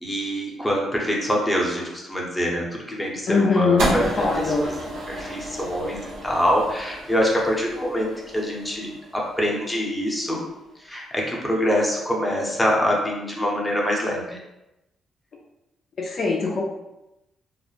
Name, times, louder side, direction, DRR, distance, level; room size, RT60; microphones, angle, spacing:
voice 1, 0.0-4.7 5.1-10.4 10.8-14.4, equal, 5° left, -2 dB, 0.7 m, -25 dB
voice 2, 3.3-4.6 16.0-16.6, left 4 dB, 50° left, 0 dB, 0.4 m, -22 dB
sound 1, 3.8-10.1, right 1 dB, 80° right, 0.7 m, -32 dB
2.4 x 2.0 x 3.1 m, 0.93 s
cardioid pair, 90°, 0 cm